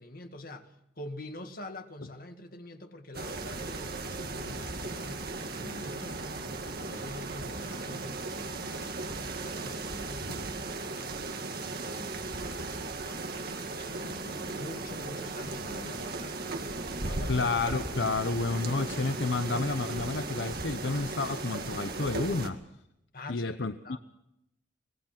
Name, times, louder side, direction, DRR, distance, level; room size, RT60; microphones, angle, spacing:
voice 1, 0.0-6.3 6.6-16.4 17.0-17.4 23.1-23.5 23.8-24.0, left 1 dB, 50° left, 6 dB, 2.0 m, -46 dB
sound 1, 3.1-22.5, right 3 dB, 50° right, 2.0 m, -36 dB
voice 2, 17.3-22.6 23.3-23.8, left 3 dB, 65° left, 9 dB, 0.9 m, -30 dB
25.0 x 18.5 x 6.0 m, 0.82 s
head